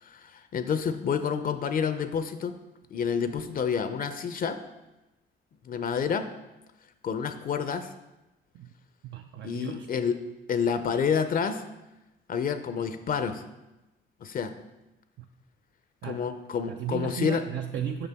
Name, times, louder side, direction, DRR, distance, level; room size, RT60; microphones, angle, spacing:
voice 1, 0.0-2.6 2.9-4.6 5.7-6.3 7.0-7.9 9.4-10.2 10.5-11.6 12.3-13.4 14.2-14.5 16.1-17.4, left 6 dB, 45° left, 10 dB, 0.5 m, -29 dB
voice 2, 9.0-9.9 15.2-15.3 16.0-16.3 16.7-18.1, right 9 dB, 65° right, 6 dB, 0.4 m, -35 dB
6.7 x 5.4 x 3.5 m, 1.0 s
cardioid pair, 90°, 20 cm